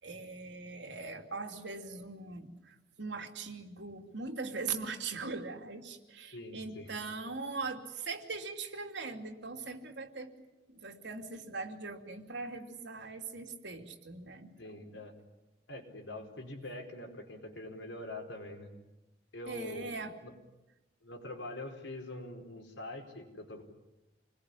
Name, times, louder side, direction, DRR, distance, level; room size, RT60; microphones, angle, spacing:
voice 1, 0.0-10.3 10.7-14.8 19.5-20.2, right 4 dB, 75° right, 3 dB, 2.9 m, -41 dB
voice 2, 6.3-6.9 14.6-15.2 15.7-18.7 19.3-19.9 20.2-20.3 21.0-23.6, left 1 dB, 85° left, 2 dB, 4.9 m, -44 dB
27.5 x 21.0 x 10.0 m, 1.0 s
head